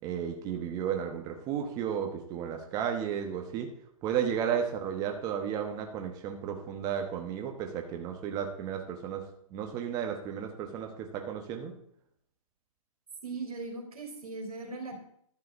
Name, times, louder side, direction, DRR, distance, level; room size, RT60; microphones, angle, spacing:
voice 1, 0.0-3.7 4.0-9.2 9.5-11.7, right 8 dB, 20° right, 4 dB, 1.0 m, -33 dB
voice 2, 13.2-15.0, right 3 dB, 90° right, 3 dB, 3.3 m, -39 dB
11.5 x 4.7 x 7.9 m, 0.69 s
hypercardioid pair, 150°, 18 cm